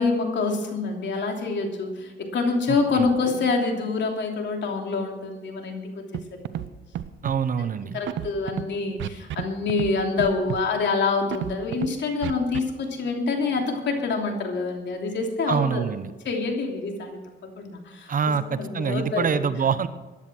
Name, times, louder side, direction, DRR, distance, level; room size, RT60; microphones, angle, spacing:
voice 1, 0.0-6.6 7.9-15.9 16.2-18.1 18.5-19.4, left 4 dB, 65° left, 2 dB, 3.1 m, -26 dB
voice 2, 2.7-3.1 7.2-8.0 15.5-16.1 18.1-19.9, right 6 dB, 45° right, 13 dB, 0.9 m, -25 dB
Scratching (performance technique), 6.1-6.2 6.5-6.7 6.9-7.4 8.1-8.6 9.0-9.4 9.7-9.9 10.2-10.6 11.3-11.9 12.2-12.6, right 12 dB, 75° right, 0.8 m, -30 dB
14.5 x 10.5 x 6.1 m, 1.2 s
cardioid pair, 90°, 20 cm